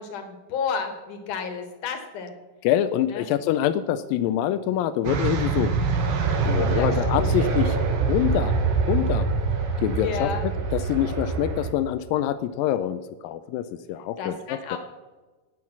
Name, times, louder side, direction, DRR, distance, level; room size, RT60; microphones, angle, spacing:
voice 1, 0.0-2.4 3.1-3.3 6.5-6.9 7.2-7.3 10.0-10.5 14.2-14.8, left 6 dB, 70° left, 6 dB, 3.0 m, -31 dB
voice 2, 2.6-5.7 6.4-7.8 8.1-8.5 8.9-9.3 9.8-14.8, left 11 dB, 90° left, 10 dB, 2.3 m, -25 dB
sound 1, 5.0-11.7, right 4 dB, 85° right, 3.3 m, -24 dB
19.0 x 6.3 x 5.9 m, 1.2 s
omnidirectional pair, 3.9 m